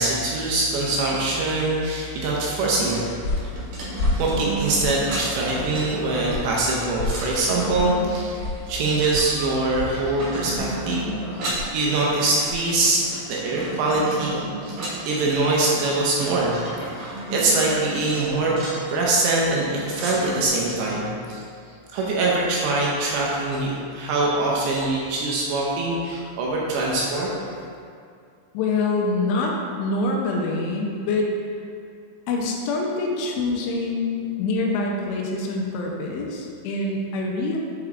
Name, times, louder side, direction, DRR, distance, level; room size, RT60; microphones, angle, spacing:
voice 1, 0.0-3.0 4.1-11.1 11.3-13.0 13.3-16.6 16.9-18.5 18.9-21.4 21.9-27.3, right 2 dB, 80° right, -4 dB, 2.7 m, -23 dB
sound 1, 2.8-12.8, left 2 dB, 65° left, 3.0 m, -33 dB
sound 2, 3.0-20.5, right 2 dB, 60° right, 2.4 m, -34 dB
voice 2, 28.5-31.3 32.3-37.6, left 3 dB, 85° left, 0 dB, 3.1 m, -25 dB
7.9 x 4.5 x 3.6 m, 2.3 s
omnidirectional pair, 5.6 m